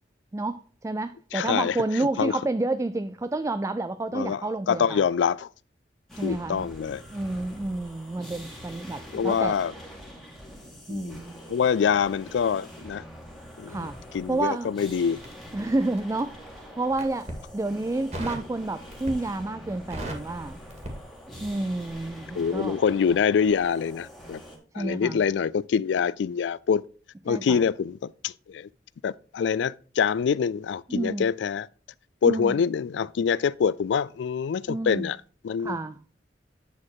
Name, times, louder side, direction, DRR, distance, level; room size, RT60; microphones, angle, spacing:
voice 1, 0.3-5.0 6.2-6.7 7.1-9.6 10.9-11.4 13.7-14.0 14.3-14.7 15.5-17.3 17.5-20.6 21.4-22.8 24.8-25.2 27.3-27.6 30.9-31.2 32.2-32.5 34.7-35.1 35.6-36.0, right 2 dB, 15° right, 0.3 m, -30 dB
voice 2, 1.3-2.4 4.1-5.5 6.2-7.0 9.1-9.7 10.9-11.2 11.5-13.0 13.6-13.9 14.1-15.2 22.4-24.4 24.7-26.8 27.2-28.7 29.0-31.7 32.2-35.2 35.4-35.8, left 6 dB, 80° left, 0.3 m, -25 dB
sound 1, 6.1-24.6, equal, ahead, 1.9 m, -45 dB
Crackle, 15.2-16.3 16.9-17.4 18.1-18.5 18.9-19.4 19.7-21.6 21.9-22.1, right 1 dB, 40° right, 2.1 m, -37 dB
9.4 x 4.2 x 4.8 m
head